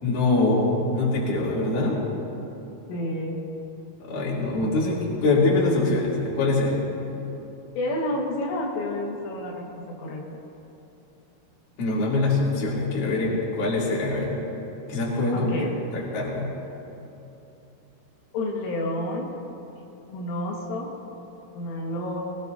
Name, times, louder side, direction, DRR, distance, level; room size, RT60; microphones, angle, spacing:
voice 1, 0.0-2.0 4.0-6.9 11.8-14.4 14.9-15.5 15.9-16.5, left 2 dB, 45° left, -6 dB, 4.3 m, -24 dB
voice 2, 2.9-3.4 7.8-10.2 15.3-15.8 18.3-19.3 20.1-20.9 21.5-22.2, left 1 dB, 80° left, -3 dB, 4.3 m, -29 dB
23.0 x 20.5 x 2.7 m, 3.0 s
omnidirectional pair, 5.7 m